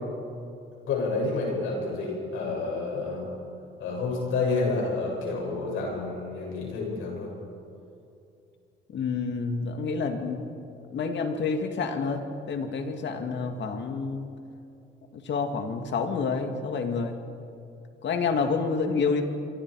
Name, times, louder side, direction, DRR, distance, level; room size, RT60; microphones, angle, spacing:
voice 1, 0.9-3.3 3.8-7.3 15.5-15.7, left 3 dB, 85° left, -2 dB, 7.6 m, -29 dB
voice 2, 8.9-10.4 10.9-14.3 15.1-17.2 18.0-19.2, left 4 dB, 65° left, 5 dB, 2.4 m, -28 dB
26.5 x 24.5 x 4.9 m, 2.6 s
cardioid pair, 90°, 20 cm